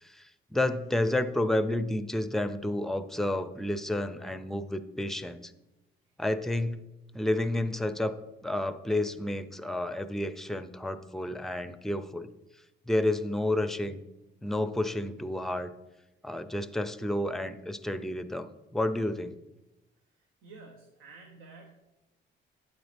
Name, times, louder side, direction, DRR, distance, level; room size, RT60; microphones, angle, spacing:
voice 1, 0.0-5.5 6.2-6.8 7.1-12.3 12.9-14.0 14.4-15.7 16.2-19.4, left 1 dB, ahead, 12 dB, 0.5 m, -30 dB
voice 2, 20.1-21.7, right 3 dB, 85° right, 1 dB, 1.2 m, -51 dB
8.4 x 8.0 x 3.4 m, 0.98 s
cardioid pair, 90°, 20 cm